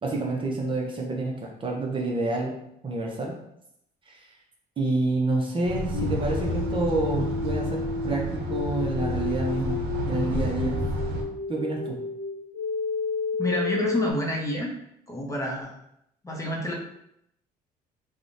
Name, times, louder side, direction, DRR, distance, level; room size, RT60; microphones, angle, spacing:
voice 1, 0.0-2.6 2.8-3.4 4.1-4.2 4.8-10.8 11.5-12.0, right 2 dB, 30° right, -1 dB, 0.6 m, -28 dB
sound 1, 5.6-11.2, right 1 dB, 75° right, 0.6 m, -30 dB
sound 2, 5.9-14.1, left 5 dB, 60° left, 0.8 m, -31 dB
voice 2, 13.4-14.7 15.1-15.7 16.2-16.7, equal, 20° left, -1 dB, 0.6 m, -28 dB
3.6 x 2.1 x 2.5 m, 0.77 s
cardioid pair, 110°, 17 cm